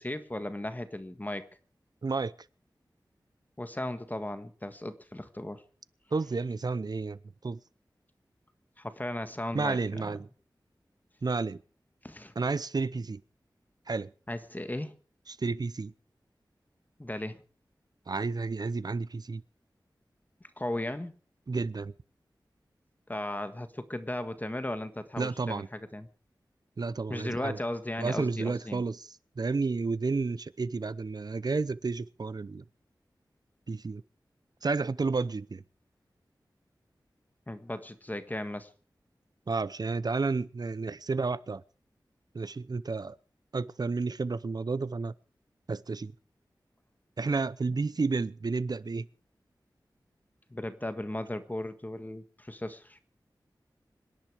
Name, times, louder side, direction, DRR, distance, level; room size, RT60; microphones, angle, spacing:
voice 1, 0.0-1.5 3.6-5.6 8.8-10.1 12.0-12.3 14.3-14.9 17.0-17.4 20.6-21.1 23.1-26.1 27.1-28.8 37.5-38.7 47.7-47.8 50.5-53.0, left 1 dB, 20° left, 1.6 m, -36 dB
voice 2, 2.0-2.3 6.1-7.2 7.4-7.6 9.5-10.3 11.2-11.6 12.4-13.2 13.9-14.1 15.3-15.9 18.1-19.4 21.5-21.9 25.2-25.7 26.8-27.6 28.0-29.0 29.4-32.6 33.7-34.0 34.6-35.6 39.5-41.6 42.3-43.2 43.5-45.1 45.7-46.1 47.2-49.1, right 4 dB, 55° right, 0.7 m, -31 dB
25.0 x 10.5 x 4.9 m
wide cardioid pair, 60°, 8 cm